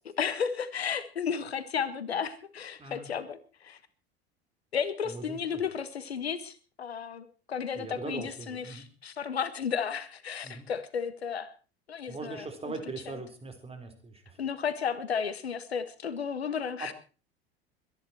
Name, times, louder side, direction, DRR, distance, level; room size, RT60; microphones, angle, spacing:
voice 1, 0.2-3.8 4.7-11.5 11.9-12.5 14.4-16.9, left 7 dB, 75° left, 14 dB, 1.4 m, -33 dB
voice 2, 2.8-3.1 5.0-5.6 7.7-8.9 10.4-10.7 12.1-14.4 16.8-16.9, right 3 dB, 20° right, 6 dB, 4.2 m, -41 dB
22.5 x 10.5 x 4.5 m, 0.36 s
figure-of-eight pair, 75°, 32 cm